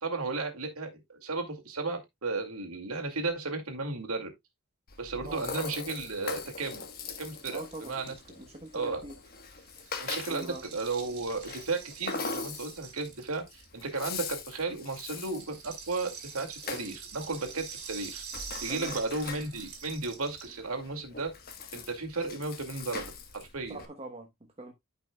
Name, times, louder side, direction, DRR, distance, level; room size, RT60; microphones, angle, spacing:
voice 1, 0.0-4.3 5.0-6.9 7.2-8.1 8.7-9.0 10.0-18.2 18.6-21.3 21.7-23.8, right 3 dB, 75° right, 2.3 m, -34 dB
Rattle (instrument), 4.9-23.9, left 4 dB, 45° left, 1.3 m, -42 dB
Rattle (instrument) 2, 7.0-7.1 7.3-14.4 14.7-20.6, right 6 dB, 50° right, 3.7 m, -46 dB
voice 2, 7.5-9.2 10.3-10.7 18.7-19.0 23.7-24.7, right 1 dB, 25° right, 1.2 m, -43 dB
13.0 x 5.5 x 2.3 m
head